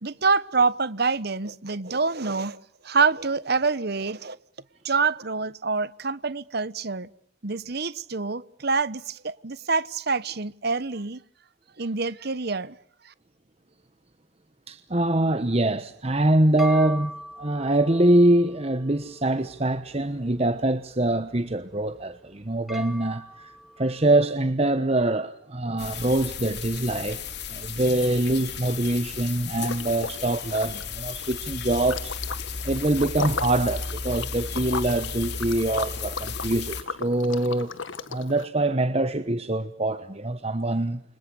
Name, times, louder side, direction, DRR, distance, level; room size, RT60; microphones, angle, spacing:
voice 1, 0.0-2.6 2.8-4.4 4.8-7.1 7.4-11.2 11.8-12.8 13.0-13.1, right 4 dB, 50° right, 1.1 m, -26 dB
voice 2, 14.7-17.1 17.4-27.2 27.5-32.1 32.6-37.8 38.1-41.0, right 1 dB, 30° right, 1.1 m, -24 dB
sound 1, 16.0-24.5, equal, ahead, 1.9 m, -43 dB
sound 2, 25.8-36.8, left 5 dB, 55° left, 3.8 m, -34 dB
Liquid, 29.6-30.2 30.5-38.5, left 4 dB, 75° left, 1.6 m, -36 dB
29.5 x 26.5 x 7.1 m
head